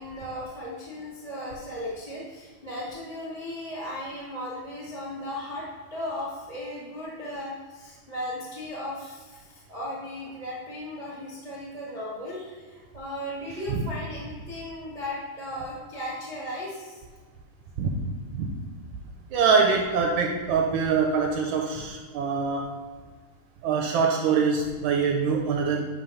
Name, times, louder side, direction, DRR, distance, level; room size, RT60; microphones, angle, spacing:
voice 1, 0.0-17.0, left 1 dB, 45° right, -7 dB, 0.4 m, -36 dB
voice 2, 19.3-22.8 23.6-25.8, right 5 dB, 80° right, 1 dB, 1.9 m, -24 dB
8.6 x 3.1 x 5.5 m, 1.5 s
omnidirectional pair, 3.8 m